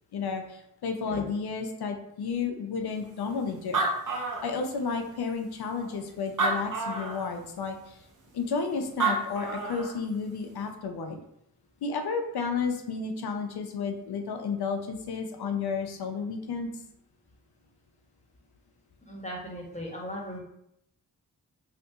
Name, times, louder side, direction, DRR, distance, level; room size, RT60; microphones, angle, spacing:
voice 1, 0.1-3.9 4.1-8.0 8.3-11.2 11.8-16.7, left 5 dB, 70° left, 5 dB, 0.6 m, -32 dB
Animal, 3.3-3.4 3.6-5.0 5.6-5.7 6.3-7.3 8.7-8.8 9.0-9.9, right 3 dB, 50° right, 0.9 m, -29 dB
voice 2, 19.0-20.4, equal, 20° left, -2 dB, 1.2 m, -37 dB
2.8 x 2.6 x 3.5 m, 0.76 s
cardioid pair, 45°, 39 cm